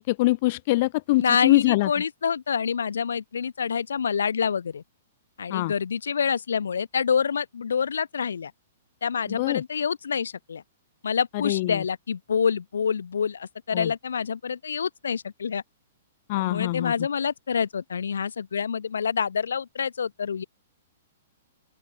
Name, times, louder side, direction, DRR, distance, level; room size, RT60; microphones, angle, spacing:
voice 1, 0.0-1.9 5.5-5.7 9.3-9.6 11.3-11.8 13.7-13.9 16.3-16.9, left 20 dB, 40° left, 0.5 m, -23 dB
voice 2, 1.2-4.8 5.4-8.5 9.0-10.6 11.0-15.6 16.4-20.4, left 6 dB, 65° left, 1.0 m, -27 dB
open air
figure-of-eight pair, 110°, 0 cm